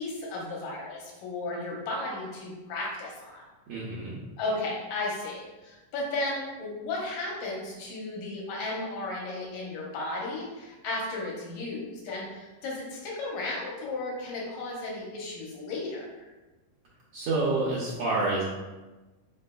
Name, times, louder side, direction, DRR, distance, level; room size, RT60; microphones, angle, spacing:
voice 1, 0.0-3.4 4.4-16.3, left 2 dB, 75° left, -4 dB, 2.4 m, -34 dB
voice 2, 3.7-4.2 17.1-18.4, right 2 dB, 85° right, -7 dB, 1.4 m, -28 dB
5.3 x 3.8 x 2.2 m, 1.2 s
omnidirectional pair, 3.9 m